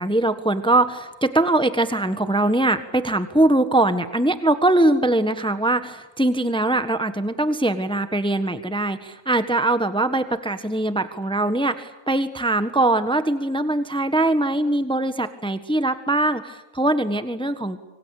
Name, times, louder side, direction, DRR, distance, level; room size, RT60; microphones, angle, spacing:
voice 1, 0.0-17.8, right 2 dB, 5° left, 10 dB, 1.2 m, -22 dB
26.0 x 25.0 x 8.4 m, 1.0 s
omnidirectional pair, 1.6 m